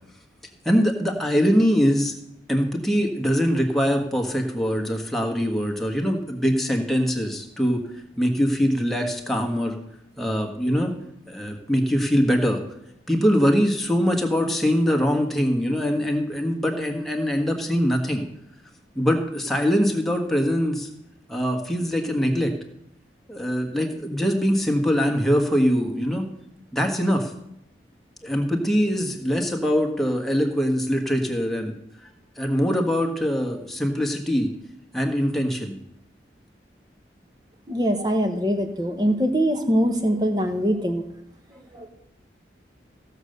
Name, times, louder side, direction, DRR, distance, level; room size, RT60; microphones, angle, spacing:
voice 1, 0.6-2.1 2.5-7.8 8.2-9.8 10.2-10.9 11.3-12.6 13.1-18.2 18.9-20.9 21.3-22.5 23.3-26.3 26.7-27.3 28.2-31.8 32.0-32.1 32.4-34.5 34.9-35.8, equal, ahead, 2 dB, 1.4 m, -23 dB
voice 2, 37.7-41.0 41.7-41.9, equal, 20° right, 6 dB, 1.1 m, -23 dB
15.5 x 6.8 x 6.5 m, 0.78 s
head